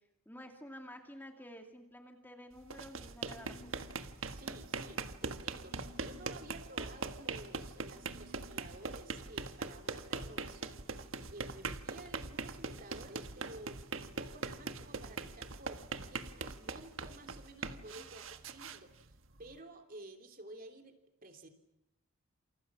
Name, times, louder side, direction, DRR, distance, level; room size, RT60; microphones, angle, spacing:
voice 1, 0.3-3.8 6.4-6.5 18.0-18.1, equal, 10° left, 3 dB, 2.6 m, -51 dB
sound 1, 2.6-19.6, right 4 dB, 65° right, 1.5 m, -42 dB
sound 2, 3.2-3.9 5.5-6.4 7.9-8.7, right 1 dB, 5° right, 3.6 m, -56 dB
voice 2, 4.3-10.8 11.3-15.8 16.1-21.5, right 2 dB, 40° right, 5 dB, 3.3 m, -53 dB
28.5 x 28.0 x 6.3 m, 0.87 s
head